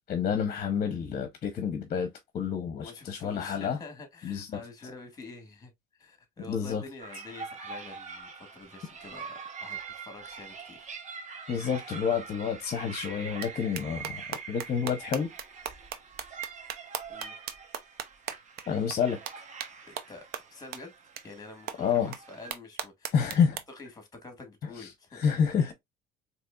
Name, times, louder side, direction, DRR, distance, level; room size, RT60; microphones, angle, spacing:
voice 1, 0.1-3.8 4.2-4.6 6.5-6.8 11.5-15.3 18.7-19.2 21.8-22.1 23.1-23.6 24.8-24.9 25.1-25.7, left 7 dB, 45° left, 0.9 m, -29 dB
voice 2, 2.8-10.9 17.1-17.4 19.9-20.9 21.2-23.1 23.7-25.2, left 3 dB, 20° left, 1.7 m, -47 dB
sound 1, 7.0-22.5, right 5 dB, 45° right, 1.0 m, -44 dB
sound 2, 13.4-13.5 13.8-18.6 18.9-19.0 19.3-19.4 19.6-19.7 20.0-20.1 20.3-20.4 20.7-20.8 21.2-21.3 21.7-21.8 22.1-22.2 22.5-23.6, right 9 dB, 65° right, 0.6 m, -36 dB
4.1 x 2.9 x 2.3 m
cardioid pair, 105°, 17 cm